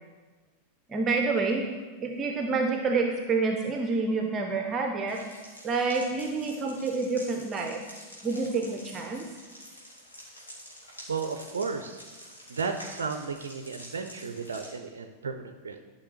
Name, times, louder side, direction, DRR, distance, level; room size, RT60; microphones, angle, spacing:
voice 1, 0.9-1.6 2.0-5.2 5.6-7.8 8.2-9.2, right 4 dB, 25° right, 4 dB, 0.7 m, -28 dB
sound 1, 5.1-14.7, equal, 75° left, 2.5 m, -48 dB
voice 2, 11.1-12.0 12.5-15.8, right 5 dB, 70° right, 7 dB, 0.5 m, -34 dB
11.5 x 5.6 x 3.1 m, 1.3 s
figure-of-eight pair, 90°, 0 cm